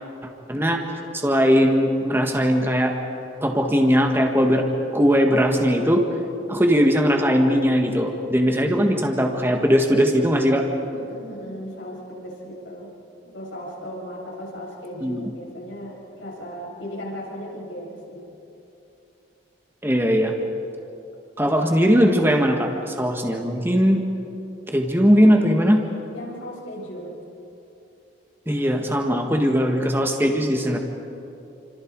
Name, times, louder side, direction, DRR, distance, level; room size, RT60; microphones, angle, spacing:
voice 1, 0.5-0.8 1.1-2.9 3.4-4.6 4.9-6.0 6.5-10.6 15.0-15.3 19.8-20.3 21.4-24.0 24.7-25.8 28.5-30.8, equal, 10° right, 2 dB, 1.8 m, -19 dB
voice 2, 10.9-12.9 13.2-18.2 25.2-25.4 26.1-27.2, equal, 90° left, -3 dB, 7.5 m, -36 dB
30.0 x 26.5 x 4.8 m, 2.8 s
head